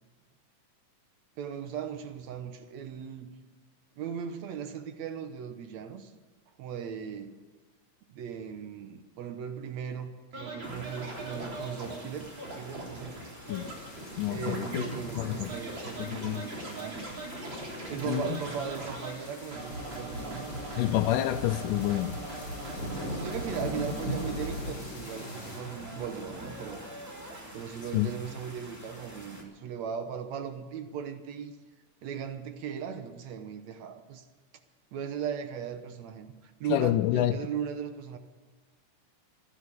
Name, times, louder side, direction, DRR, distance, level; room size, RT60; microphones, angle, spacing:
voice 1, 1.4-3.3 4.0-6.1 6.6-7.3 8.1-13.2 14.3-17.1 17.9-20.8 22.9-26.9 27.5-31.5 32.0-34.3 34.9-38.2, right 7 dB, 70° right, 8 dB, 2.1 m, -38 dB
Scratching (performance technique), 10.3-19.1 19.5-24.7 25.0-27.4, right 1 dB, 35° right, 4.0 m, -40 dB
sound 1, 10.6-29.4, equal, 5° right, 1.8 m, -49 dB
sound 2, 13.5-25.6, left 1 dB, 65° left, 6.0 m, -42 dB
voice 2, 14.2-14.8 15.2-15.5 16.0-16.5 18.1-18.4 20.8-22.1 27.9-28.1 36.7-37.3, left 14 dB, 90° left, 6 dB, 2.2 m, -28 dB
15.0 x 11.5 x 8.2 m, 1.4 s
omnidirectional pair, 3.6 m